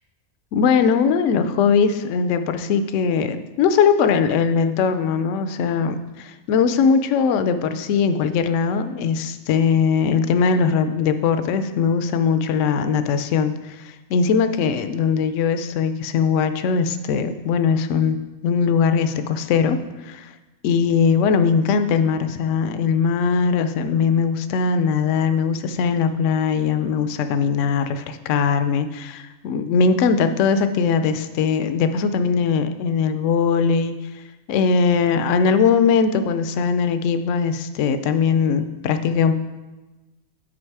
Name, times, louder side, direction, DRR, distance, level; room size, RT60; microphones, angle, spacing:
voice 1, 0.5-18.2 18.4-20.3 20.6-33.9 34.5-39.3, left 6 dB, 70° left, 10 dB, 0.8 m, -20 dB
8.7 x 5.0 x 4.7 m, 1.1 s
omnidirectional pair, 1.4 m